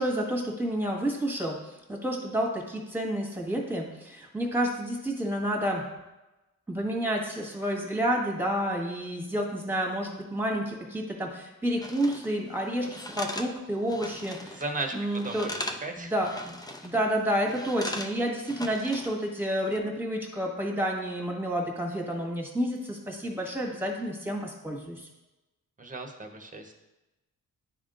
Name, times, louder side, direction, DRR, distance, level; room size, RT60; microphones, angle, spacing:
voice 1, 0.0-1.6 1.9-5.8 6.7-14.6 14.9-15.5 16.0-16.5 16.8-25.1, equal, 5° right, -1 dB, 1.6 m, -30 dB
sound 1, 11.8-12.3 12.8-14.7 15.0-15.9 16.2-17.0 17.5-19.2 19.6-19.8, left 1 dB, 10° left, 0.6 m, -39 dB
voice 2, 14.4-15.0 15.2-15.5 15.8-16.1 16.8-16.9 25.8-26.7, right 2 dB, 20° right, 4 dB, 1.1 m, -36 dB
10.0 x 3.6 x 2.5 m, 1.0 s
cardioid pair, 55°, 37 cm